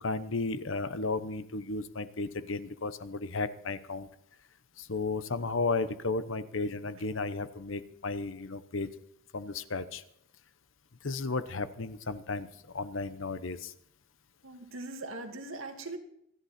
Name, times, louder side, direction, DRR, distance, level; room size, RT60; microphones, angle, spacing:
voice 1, 0.0-4.1 4.8-8.9 9.3-10.0 11.0-12.5 12.7-13.7, left 3 dB, 70° left, 13 dB, 1.0 m, -34 dB
voice 2, 14.4-16.0, right 2 dB, 90° right, 5 dB, 2.2 m, -40 dB
26.0 x 11.0 x 4.3 m, 0.75 s
head